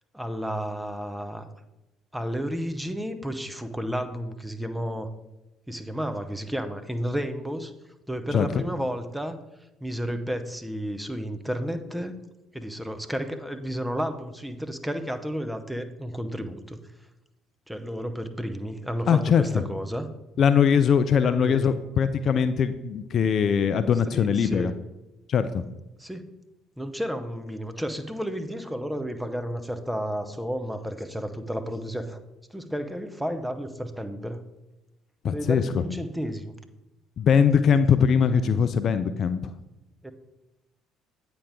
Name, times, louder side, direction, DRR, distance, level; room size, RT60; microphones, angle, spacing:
voice 1, 0.1-1.4 2.1-5.1 5.7-7.7 8.1-9.3 9.8-12.2 12.5-16.8 17.7-20.1 21.2-21.7 24.1-24.7 26.0-26.3 26.8-32.2 32.5-34.4 35.3-36.5 40.0-40.1, equal, 5° right, 7 dB, 0.7 m, -32 dB
voice 2, 19.1-19.4 20.4-24.7 25.3-25.6 35.2-35.8 37.2-39.5, left 7 dB, 50° left, 12 dB, 0.3 m, -21 dB
8.6 x 5.0 x 3.6 m, 0.98 s
figure-of-eight pair, 50°, 0 cm